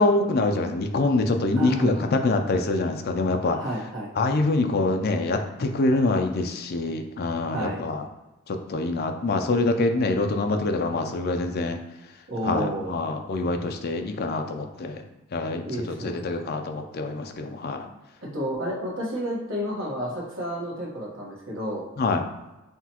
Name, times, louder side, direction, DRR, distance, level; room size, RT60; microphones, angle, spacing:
voice 1, 0.0-3.6 4.2-8.0 8.5-11.8 12.4-15.0 15.3-17.9 22.0-22.2, left 2 dB, 45° left, 5 dB, 0.4 m, -25 dB
voice 2, 1.5-2.1 3.6-4.1 7.5-7.8 12.3-13.0 15.6-16.2 18.2-21.9, equal, 60° right, -4 dB, 1.2 m, -31 dB
5.7 x 2.4 x 2.9 m, 1.0 s
head